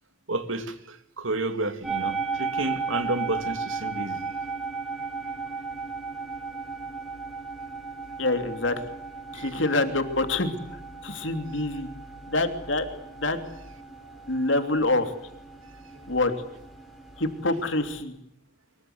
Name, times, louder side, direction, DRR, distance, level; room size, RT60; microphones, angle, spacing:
voice 1, 0.3-4.2 9.3-9.5, right 2 dB, 80° right, 9 dB, 2.8 m, -31 dB
sound 1, 1.8-18.0, right 4 dB, ahead, 4.3 m, -36 dB
voice 2, 8.2-8.8 9.3-10.5 11.0-11.9 12.3-12.9 13.2-13.4 14.3-15.1 16.1-16.3 17.2-18.1, left 2 dB, 70° left, 7 dB, 3.0 m, -26 dB
24.5 x 23.5 x 8.1 m, 0.76 s
head